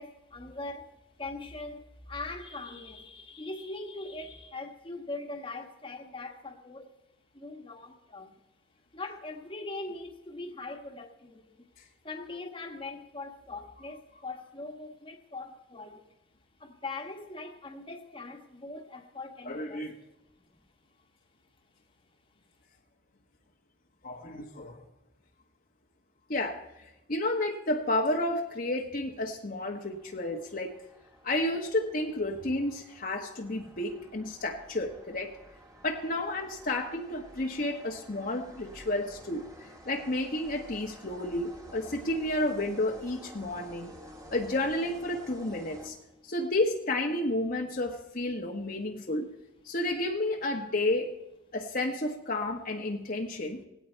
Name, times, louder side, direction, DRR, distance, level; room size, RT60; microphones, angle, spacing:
voice 1, 0.0-6.9 7.3-8.3 8.9-11.6 12.0-16.1 16.6-19.9 33.6-33.7, left 2 dB, 25° left, 1.4 m, -41 dB
voice 2, 19.4-20.0 24.0-24.8 26.3-30.8 31.2-35.4 35.8-43.9 44.3-46.0 46.2-49.3 49.6-51.2 51.5-53.6, left 1 dB, 45° left, 1.1 m, -31 dB
sound 1, 29.6-46.4, equal, 20° right, 1.6 m, -52 dB
18.5 x 17.0 x 4.5 m
head